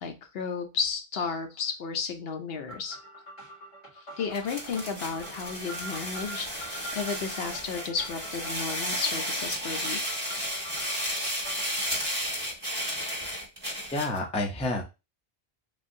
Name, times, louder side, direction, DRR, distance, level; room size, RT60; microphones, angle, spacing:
voice 1, 0.0-3.0 3.9-10.3, left 5 dB, 70° left, 5 dB, 0.8 m, -33 dB
sound 1, 2.7-11.9, right 1 dB, 40° left, 1.7 m, -45 dB
sound 2, 4.3-14.2, equal, 20° right, 1.4 m, -33 dB
voice 2, 13.9-14.8, left 2 dB, 10° left, 2 dB, 0.4 m, -29 dB
3.4 x 2.6 x 2.6 m, 0.27 s
omnidirectional pair, 1.1 m